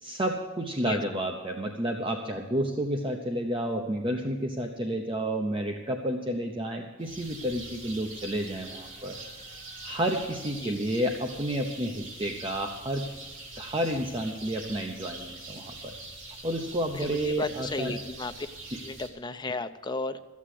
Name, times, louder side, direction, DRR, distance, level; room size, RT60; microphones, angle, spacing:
voice 1, 0.0-9.2 9.8-13.0 13.6-15.9 16.4-17.9, right 1 dB, 25° right, 2 dB, 0.9 m, -30 dB
sound 1, 7.0-19.1, right 2 dB, 70° right, 3.0 m, -44 dB
voice 2, 16.9-18.5 18.8-20.2, left 3 dB, 20° left, 9 dB, 0.6 m, -34 dB
14.0 x 8.4 x 7.7 m, 1.2 s
head